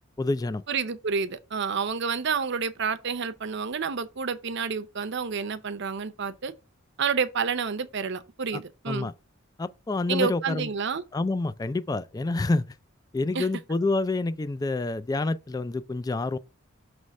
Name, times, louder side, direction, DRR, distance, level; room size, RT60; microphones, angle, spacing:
voice 1, 0.2-0.6 8.5-8.6 8.9-9.1 9.6-10.7 11.1-12.7 13.1-16.4, left 2 dB, 20° left, 0.3 m, -28 dB
voice 2, 0.7-6.5 7.0-9.1 10.1-11.0 13.3-13.5, right 5 dB, 60° right, 0.7 m, -29 dB
6.2 x 3.1 x 5.3 m
head